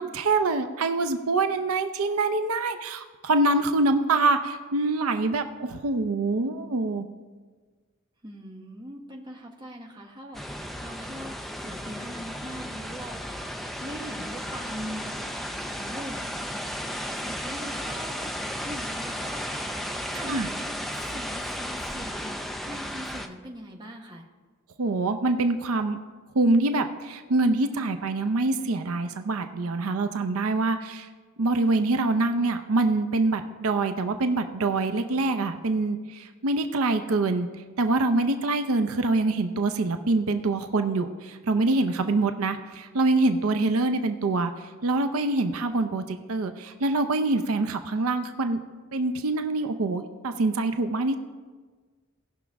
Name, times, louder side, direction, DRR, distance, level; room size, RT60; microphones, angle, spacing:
voice 1, 0.0-7.1 20.3-20.5 24.8-26.0 26.3-31.1 31.4-37.5 37.8-48.6 48.9-51.2, right 2 dB, 85° right, 8 dB, 0.6 m, -25 dB
voice 2, 8.2-16.4 16.9-18.3 18.6-24.3, equal, 20° right, 1 dB, 1.0 m, -42 dB
sound 1, 10.3-23.3, equal, ahead, 0.4 m, -34 dB
17.5 x 6.0 x 3.5 m, 1.4 s
head